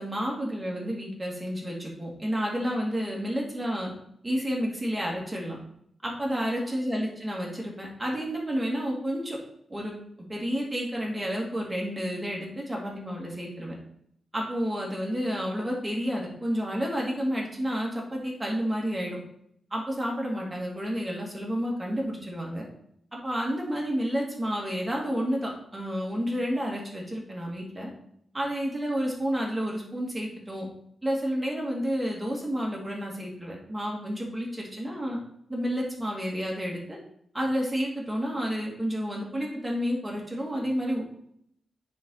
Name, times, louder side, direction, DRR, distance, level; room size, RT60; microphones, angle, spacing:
voice 1, 0.0-3.9 4.2-5.6 6.0-9.4 9.7-9.9 10.3-13.8 14.3-19.2 19.7-22.7 23.2-27.9 28.3-30.7 31.0-35.2 35.5-37.0 37.3-41.0, equal, 15° right, -2 dB, 2.4 m, -30 dB
9.3 x 4.5 x 4.0 m, 0.71 s
cardioid pair, 100°, 0 cm